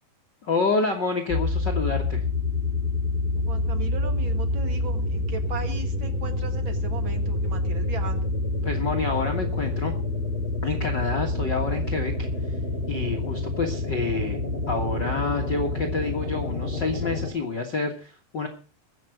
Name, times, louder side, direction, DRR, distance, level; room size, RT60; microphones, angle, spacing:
voice 1, 0.4-2.2 8.6-9.9 10.6-12.3 12.9-14.4 14.7-18.5, left 4 dB, 75° left, 2 dB, 1.0 m, -28 dB
sound 1, 1.3-17.3, left 2 dB, 20° right, 2.3 m, -27 dB
voice 2, 3.4-8.3, right 6 dB, 60° right, 7 dB, 1.3 m, -37 dB
22.5 x 7.8 x 4.9 m, 0.37 s
omnidirectional pair, 4.7 m